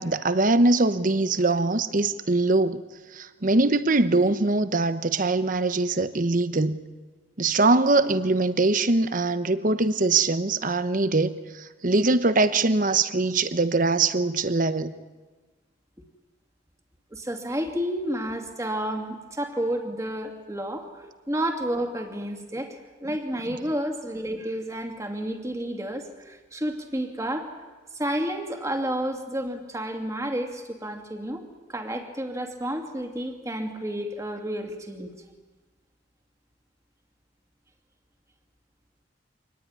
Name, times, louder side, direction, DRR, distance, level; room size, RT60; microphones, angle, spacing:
voice 1, 0.0-2.8 3.1-6.8 7.4-14.9, right 3 dB, 45° right, 12 dB, 1.0 m, -22 dB
voice 2, 17.1-27.5 27.9-35.1, right 1 dB, 15° right, 4 dB, 2.4 m, -31 dB
25.5 x 19.0 x 9.7 m, 1.3 s
head